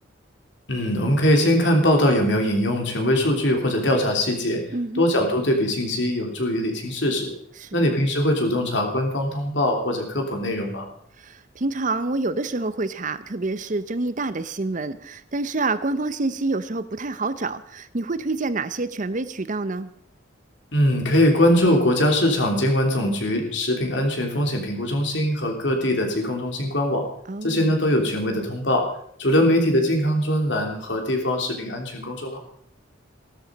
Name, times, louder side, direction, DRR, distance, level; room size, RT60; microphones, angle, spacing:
voice 1, 0.7-4.6 5.0-7.3 7.7-10.9 20.7-27.1 27.4-28.9 29.2-32.4, left 1 dB, 65° left, 2 dB, 3.2 m, -22 dB
voice 2, 4.7-5.1 7.6-7.8 11.2-19.9 27.3-27.7, right 3 dB, 40° right, 14 dB, 0.8 m, -27 dB
16.0 x 13.0 x 5.2 m, 0.67 s
head